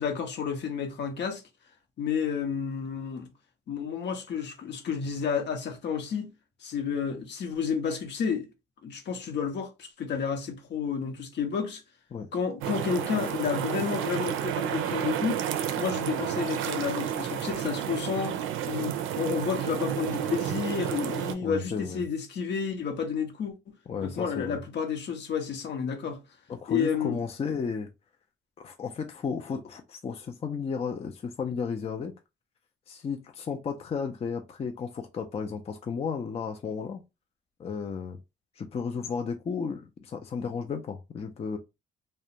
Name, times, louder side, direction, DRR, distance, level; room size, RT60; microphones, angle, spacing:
voice 1, 0.0-1.4 2.0-3.3 3.7-6.3 6.6-8.5 8.8-11.8 12.3-15.4 15.8-18.4 18.7-23.7 24.0-26.2 26.7-27.2, left 6 dB, 60° left, 0.8 m, -31 dB
sound 1, 12.6-21.3, right 10 dB, 90° right, 0.4 m, -31 dB
voice 2, 21.4-22.0 23.9-24.6 26.5-27.9 28.6-32.1 32.9-37.0 37.6-38.2 38.6-41.6, left 5 dB, 30° left, 0.4 m, -33 dB
2.4 x 2.1 x 2.8 m
cardioid pair, 90°, 20 cm